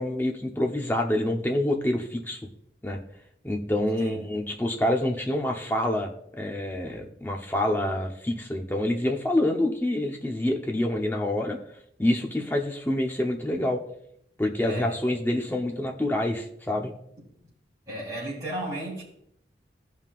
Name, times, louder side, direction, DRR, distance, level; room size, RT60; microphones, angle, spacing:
voice 1, 0.0-2.4 2.8-3.0 3.4-11.6 12.0-13.8 14.4-16.9, left 1 dB, 10° left, 1 dB, 0.9 m, -27 dB
voice 2, 14.6-14.9 17.9-19.0, right 1 dB, 20° right, -8 dB, 3.5 m, -34 dB
16.0 x 5.6 x 2.5 m, 0.73 s
head